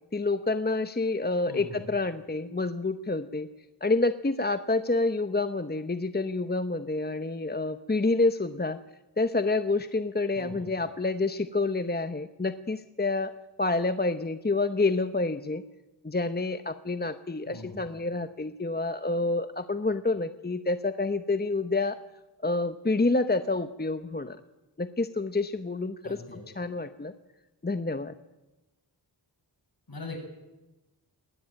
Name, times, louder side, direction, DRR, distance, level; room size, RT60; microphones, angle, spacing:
voice 1, 0.1-3.5 3.8-8.8 9.2-13.3 13.6-15.6 16.0-22.0 22.4-24.4 24.8-27.1 27.6-28.1, left 3 dB, 25° left, 10 dB, 0.9 m, -28 dB
voice 2, 1.5-1.8 10.4-10.7 17.5-17.8 26.0-26.4 29.9-30.2, left 3 dB, 55° left, 3 dB, 7.7 m, -41 dB
21.5 x 18.0 x 9.0 m, 1.1 s
wide cardioid pair, 85°, 42 cm